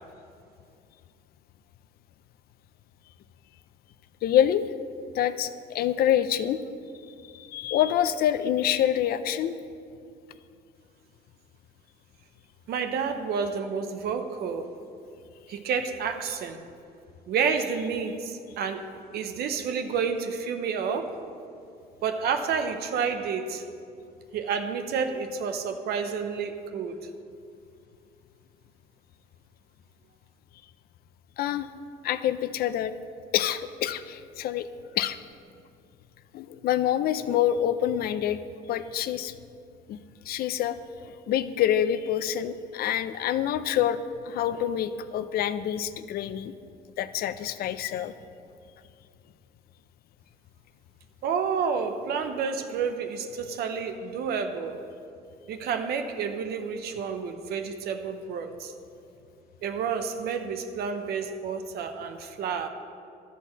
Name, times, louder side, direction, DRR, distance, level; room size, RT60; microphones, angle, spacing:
voice 1, 4.2-4.7 5.1-6.6 7.3-9.6 31.4-31.7 32.0-32.9 33.3-34.7 34.9-35.2 36.3-38.4 38.7-39.3 39.9-40.0 40.3-40.8 41.0-44.0 44.3-46.5 47.0-48.1, left 10 dB, 65° left, 12 dB, 0.5 m, -26 dB
voice 2, 12.7-14.7 15.5-16.6 17.3-18.8 19.1-21.2 22.0-23.6 24.3-27.0 51.2-54.8 55.5-58.7 59.6-62.7, right 6 dB, 70° right, 7 dB, 0.7 m, -30 dB
12.0 x 4.2 x 7.2 m, 2.5 s
cardioid pair, 110°, 17 cm